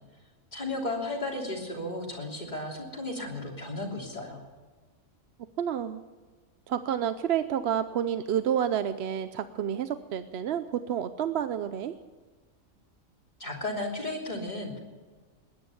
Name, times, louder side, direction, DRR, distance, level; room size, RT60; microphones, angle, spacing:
voice 1, 0.5-4.4 13.4-14.8, left 2 dB, 35° left, -2 dB, 3.3 m, -34 dB
voice 2, 5.6-6.0 6.7-11.9, right 9 dB, 60° right, 11 dB, 0.8 m, -29 dB
20.0 x 10.5 x 7.0 m, 1.4 s
omnidirectional pair, 1.3 m